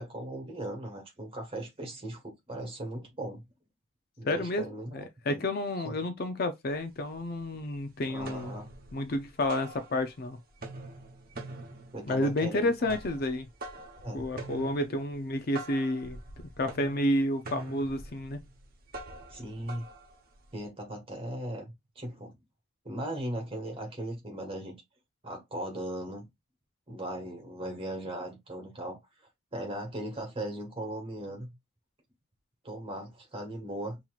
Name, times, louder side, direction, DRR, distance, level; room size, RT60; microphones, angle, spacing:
voice 1, 0.0-3.4 4.2-5.4 5.8-6.0 8.1-8.7 11.9-12.7 14.0-14.3 19.3-19.9 20.5-22.3 22.8-24.8 25.2-26.3 26.9-29.0 29.5-31.5 32.6-34.0, right 1 dB, 25° right, 1.5 m, -38 dB
voice 2, 4.2-4.6 4.9-8.5 8.9-10.4 12.1-13.5 14.1-16.2 16.6-18.4, left 1 dB, 45° left, 0.5 m, -30 dB
sound 1, 6.7-6.8 7.1-7.8 8.1-10.3 10.5-20.7, right 2 dB, 45° right, 0.9 m, -45 dB
5.5 x 2.9 x 2.4 m
head